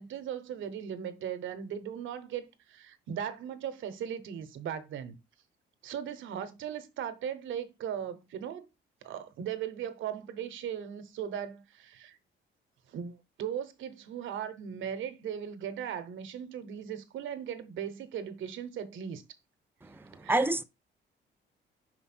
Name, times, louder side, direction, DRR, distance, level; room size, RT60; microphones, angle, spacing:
voice 1, 0.0-5.2 5.8-8.7 9.0-12.2 12.9-19.2 20.2-20.6, right 8 dB, 75° right, 0.9 m, -38 dB
voice 2, 19.8-20.6, right 2 dB, 10° right, 0.6 m, -29 dB
5.3 x 4.6 x 4.4 m
cardioid pair, 90°, 20 cm